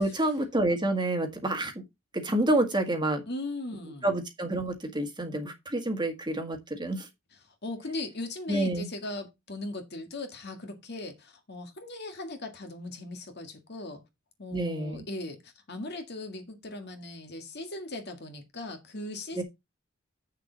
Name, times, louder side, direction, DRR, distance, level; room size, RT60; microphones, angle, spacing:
voice 1, 0.0-1.7 2.1-3.2 4.0-7.1 8.5-8.9 14.5-15.0 19.3-19.4, right 1 dB, 20° right, 1.7 m, -28 dB
voice 2, 3.3-4.1 7.6-14.0 14.4-19.4, left 2 dB, 55° left, 1.9 m, -38 dB
8.3 x 6.6 x 4.0 m
head